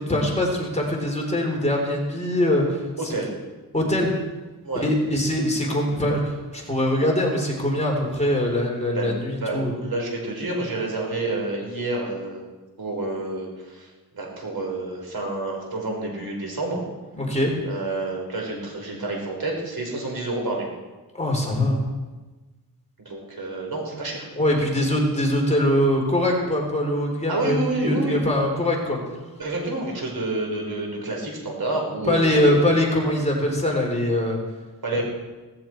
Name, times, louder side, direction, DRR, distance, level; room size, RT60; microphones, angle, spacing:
voice 1, 0.0-2.8 3.7-4.1 4.8-9.7 17.1-17.5 21.2-21.8 24.4-29.0 32.1-34.4, left 1 dB, 20° left, -1 dB, 3.7 m, -22 dB
voice 2, 3.0-3.3 4.6-4.8 8.9-12.4 12.8-16.8 17.6-20.7 23.0-24.3 27.3-28.2 29.4-32.7 34.8-35.0, right 2 dB, 65° right, 0 dB, 4.8 m, -29 dB
17.5 x 15.5 x 4.6 m, 1.2 s
wide cardioid pair, 140°, 38 cm